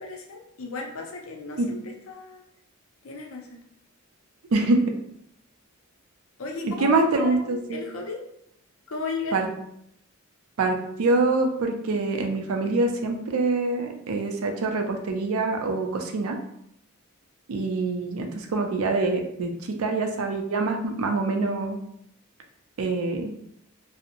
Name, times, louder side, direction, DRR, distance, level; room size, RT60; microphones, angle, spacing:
voice 1, 0.0-2.4 3.0-3.5 6.4-8.2 8.9-9.4, left 3 dB, 65° left, 1 dB, 0.5 m, -35 dB
voice 2, 4.5-5.0 6.6-7.8 9.3-9.5 10.6-16.4 17.5-21.8 22.8-23.3, right 3 dB, 70° right, 4 dB, 0.4 m, -25 dB
2.8 x 2.0 x 2.6 m, 0.73 s
head